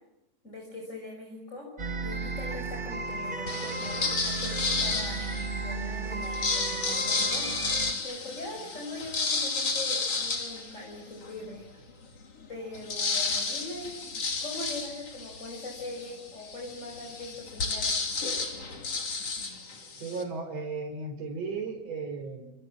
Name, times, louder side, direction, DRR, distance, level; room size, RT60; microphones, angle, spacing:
voice 1, 0.4-1.7 2.0-7.6 8.0-11.7 12.5-18.0, left 2 dB, 20° left, -1 dB, 6.1 m, -41 dB
sound 1, 1.8-7.9, right 3 dB, 25° right, 1.2 m, -34 dB
sound 2, 3.5-5.6 6.2-11.4 11.9-12.0 12.2-20.2, left 4 dB, 45° left, 4.0 m, -32 dB
voice 2, 20.0-22.5, right 4 dB, 45° right, 4 dB, 5.6 m, -35 dB
28.0 x 27.5 x 7.3 m, 0.93 s
omnidirectional pair, 4.0 m